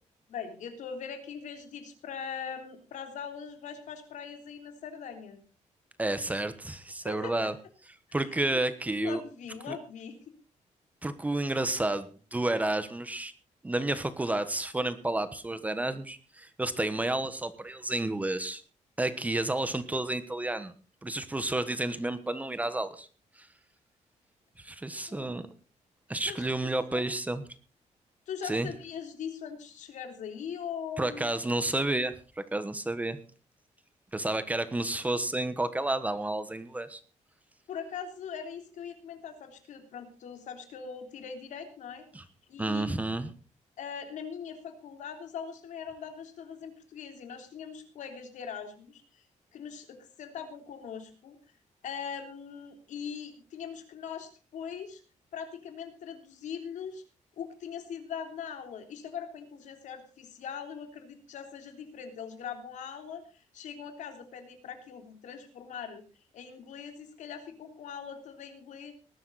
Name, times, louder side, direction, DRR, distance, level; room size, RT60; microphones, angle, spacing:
voice 1, 0.3-5.4 7.0-7.3 8.1-8.2 8.5-8.6 9.0-10.2 25.1-25.5 26.3-27.0 28.3-31.3 37.7-43.0 43.8-49.2 49.5-51.4 51.8-55.0 55.3-57.0 57.4-66.0 66.3-68.9, left 7 dB, 75° left, 6 dB, 3.5 m, -41 dB
voice 2, 6.0-7.5 8.1-9.2 9.7-9.8 11.0-13.3 13.6-18.6 19.0-20.7 21.0-23.1 23.4-23.5 24.6-25.5 26.1-27.4 28.4-28.7 31.0-33.2 34.1-37.0 42.1-42.2 42.6-43.3, right 2 dB, 10° right, 12 dB, 1.1 m, -31 dB
19.0 x 12.5 x 4.1 m, 0.36 s
cardioid pair, 160°, 13 cm